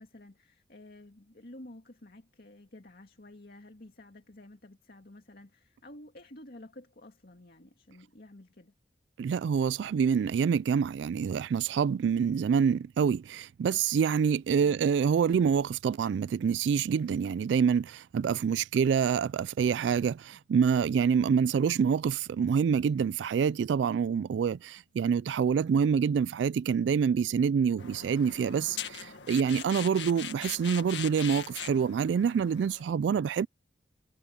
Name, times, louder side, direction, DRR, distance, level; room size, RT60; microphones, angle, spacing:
voice 1, 0.0-8.7 14.6-14.8, left 1 dB, 55° left, 2.2 m, -51 dB
voice 2, 9.2-33.5, right 6 dB, 80° right, 0.3 m, -26 dB
sound 1, 27.8-32.8, left 8 dB, 90° left, 1.7 m, -41 dB
head